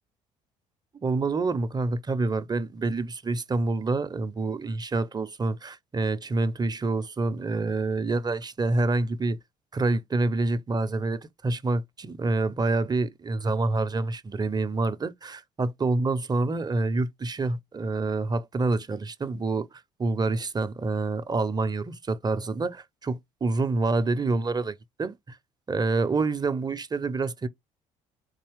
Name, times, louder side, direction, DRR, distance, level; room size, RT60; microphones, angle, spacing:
voice 1, 1.0-9.4 9.7-25.4 25.7-27.5, right 3 dB, 25° right, 0.6 m, -27 dB
4.0 x 2.9 x 3.1 m
hypercardioid pair, 50°, 17 cm